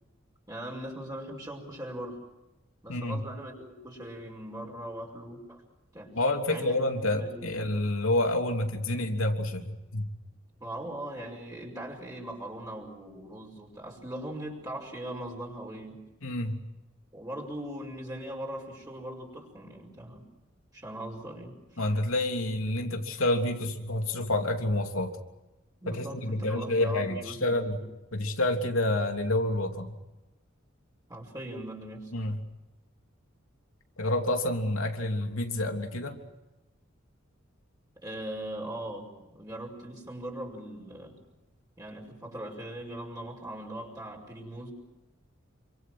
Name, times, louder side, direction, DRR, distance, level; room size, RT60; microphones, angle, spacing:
voice 1, 0.5-2.2 2.8-5.6 5.9-6.1 6.5-7.6 10.6-16.0 17.1-20.2 20.7-21.8 25.8-27.8 31.1-32.1 38.0-41.2 41.8-44.7, right 1 dB, 20° right, -2 dB, 5.6 m, -40 dB
voice 2, 2.9-3.2 6.1-10.1 16.2-16.6 21.8-25.1 25.9-27.8 28.1-29.9 32.1-32.4 34.0-36.2, left 1 dB, 85° left, 4 dB, 3.2 m, -28 dB
28.5 x 25.5 x 6.2 m, 1.0 s
head